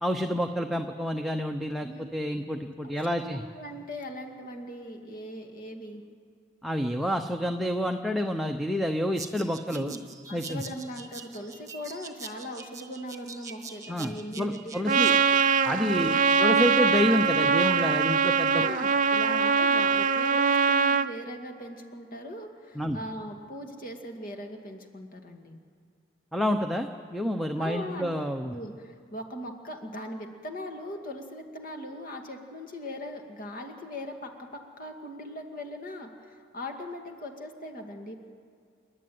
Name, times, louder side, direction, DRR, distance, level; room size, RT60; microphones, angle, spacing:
voice 1, 0.0-3.4 6.6-9.9 10.3-10.6 13.9-14.1 14.4-15.1 15.6-18.7 22.8-23.0 26.3-28.5, equal, ahead, 5 dB, 0.7 m, -28 dB
voice 2, 1.8-2.4 2.8-6.0 9.7-15.2 18.5-25.6 27.6-28.1 28.4-38.1, equal, 50° left, 3 dB, 2.2 m, -40 dB
sound 1, 9.2-15.2, right 5 dB, 20° right, 1.5 m, -44 dB
Trumpet, 14.9-21.1, right 5 dB, 45° right, 0.5 m, -23 dB
29.5 x 11.0 x 9.4 m, 2.2 s
head